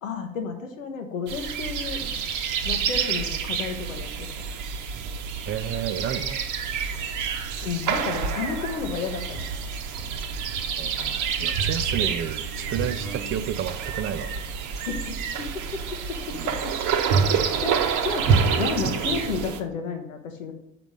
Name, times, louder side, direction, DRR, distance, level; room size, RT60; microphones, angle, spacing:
voice 1, 0.0-2.0 2.6-4.3 7.6-9.4 14.9-15.0 15.4-16.7 17.6-20.5, left 5 dB, 80° left, 6 dB, 0.8 m, -32 dB
sound 1, 1.3-19.6, right 6 dB, 50° right, 0.9 m, -27 dB
voice 2, 5.5-6.4 10.8-14.3 16.3-16.6, right 9 dB, 35° right, 11 dB, 0.4 m, -31 dB
5.9 x 4.9 x 5.2 m, 0.81 s
figure-of-eight pair, 55°, 39 cm